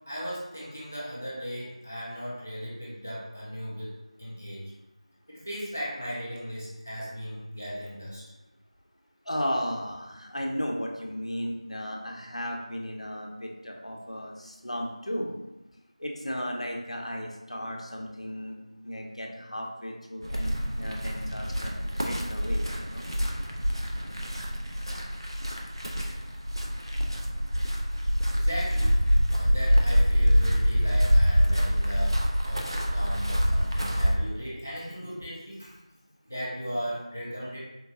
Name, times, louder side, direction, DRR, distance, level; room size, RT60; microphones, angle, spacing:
voice 1, 0.1-3.9 4.2-4.7 5.3-8.2 28.3-29.0 29.3-32.2 32.4-35.7 36.3-37.6, equal, 20° left, -8 dB, 0.7 m, -37 dB
voice 2, 9.3-15.3 16.0-18.6 18.8-21.7 22.0-23.0, equal, 65° left, 0 dB, 0.8 m, -35 dB
sound 1, 20.2-34.2, equal, 45° right, 0.5 m, -25 dB
4.4 x 2.3 x 2.7 m, 1.0 s
figure-of-eight pair, 180°, 4 cm